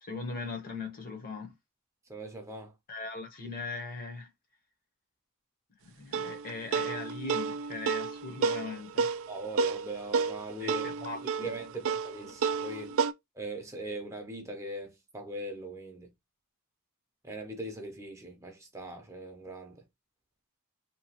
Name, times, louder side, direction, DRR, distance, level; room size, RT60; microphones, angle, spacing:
voice 1, 0.0-1.5 2.9-4.3 5.8-9.1 10.6-11.5 11.8-12.0 12.2-12.3 12.9-13.0, left 3 dB, 40° left, 0.9 m, -40 dB
voice 2, 2.1-2.7 9.3-10.9 11.4-13.0 13.4-16.1 17.2-19.8, right 1 dB, 15° right, 0.6 m, -40 dB
sound 1, 6.1-13.1, right 5 dB, 65° right, 0.3 m, -31 dB
2.9 x 2.3 x 2.8 m
head